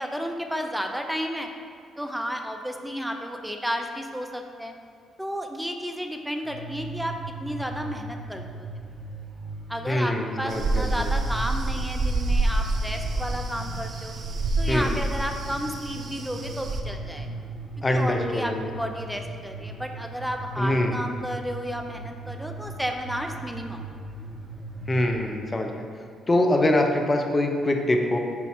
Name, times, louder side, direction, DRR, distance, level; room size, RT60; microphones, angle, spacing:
voice 1, 0.0-1.5 2.0-4.7 5.2-8.7 9.7-14.1 14.6-17.3 17.9-23.8, equal, ahead, 3 dB, 0.7 m, -32 dB
sound 1, 6.4-25.3, right 2 dB, 35° right, 1.5 m, -39 dB
voice 2, 9.9-11.1 14.7-14.9 17.8-18.7 20.6-20.9 24.9-25.7 26.3-28.2, left 1 dB, 30° left, 3 dB, 0.8 m, -24 dB
sound 2, 10.5-16.8, right 2 dB, 55° right, 0.6 m, -28 dB
8.4 x 2.8 x 4.6 m, 2.2 s
hypercardioid pair, 50°, 0 cm